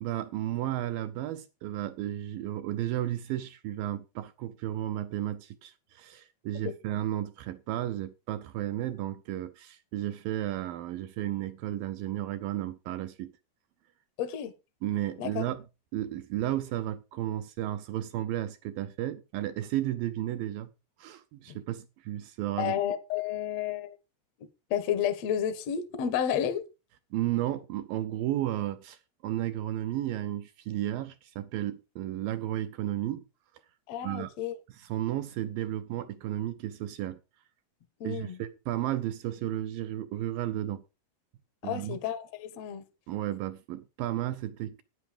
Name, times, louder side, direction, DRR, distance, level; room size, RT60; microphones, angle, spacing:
voice 1, 0.0-13.3 14.8-15.7 15.9-20.7 21.0-22.8 27.1-33.2 34.0-34.3 34.7-37.2 38.0-40.8 41.6-42.0 43.1-44.8, right 13 dB, 80° right, 2.1 m, -33 dB
voice 2, 14.2-14.5 15.2-15.4 21.5-21.6 22.6-23.9 24.7-26.6 33.9-34.5 38.0-38.4 41.6-42.8, left 9 dB, 65° left, 1.7 m, -31 dB
11.5 x 9.7 x 5.1 m
omnidirectional pair, 5.0 m